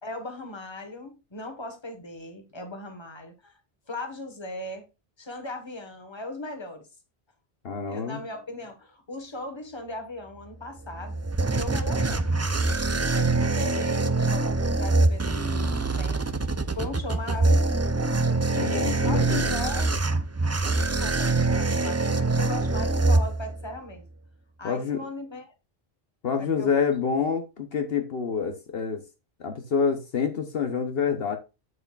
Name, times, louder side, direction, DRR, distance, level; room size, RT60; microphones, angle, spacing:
voice 1, 0.0-3.6 3.9-4.9 5.2-6.9 7.9-11.2 11.6-16.3 16.7-17.8 18.5-20.0 20.6-24.0 24.6-25.5 26.4-26.7, left 2 dB, 25° left, 1.5 m, -38 dB
voice 2, 7.6-8.2 18.5-19.6 24.6-25.0 26.2-29.0 29.4-31.4, left 6 dB, 70° left, 1.1 m, -27 dB
sound 1, 10.8-23.8, right 3 dB, 25° right, 0.3 m, -24 dB
8.2 x 7.7 x 2.4 m
omnidirectional pair, 1.1 m